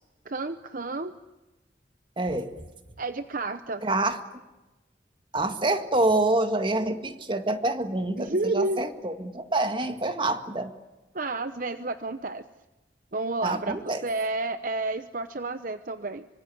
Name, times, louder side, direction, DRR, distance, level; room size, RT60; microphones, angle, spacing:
voice 1, 0.3-1.1 3.0-3.8 8.2-8.8 11.1-12.4 13.1-16.3, right 2 dB, 50° right, 10 dB, 0.9 m, -30 dB
voice 2, 2.2-2.5 3.8-4.2 5.3-10.7 13.4-14.0, right 2 dB, 25° right, 8 dB, 1.9 m, -26 dB
25.5 x 25.0 x 8.7 m, 1.1 s
head